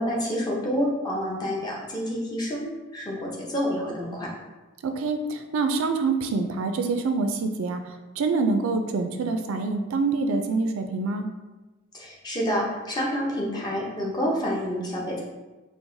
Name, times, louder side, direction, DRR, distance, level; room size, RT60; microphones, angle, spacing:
voice 1, 0.0-4.3 11.9-15.2, equal, 20° left, -3 dB, 0.6 m, -28 dB
voice 2, 4.8-7.8 8.2-11.3, right 3 dB, 90° right, 6 dB, 0.4 m, -26 dB
4.5 x 2.0 x 2.6 m, 1.1 s
head